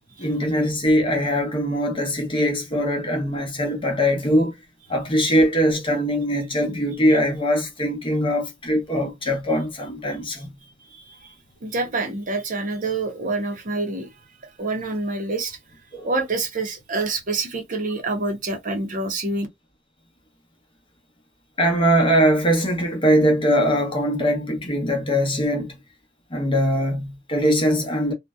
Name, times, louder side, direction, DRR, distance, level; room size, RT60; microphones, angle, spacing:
voice 1, 0.2-4.5 4.9-10.5 15.9-16.1 21.6-25.7 26.3-28.1, equal, 25° left, 0.8 m, -21 dB
voice 2, 10.9-11.3 11.6-14.1 14.6-15.6 16.0-19.5, right 3 dB, 45° right, 0.7 m, -27 dB
2.6 x 2.1 x 2.2 m
head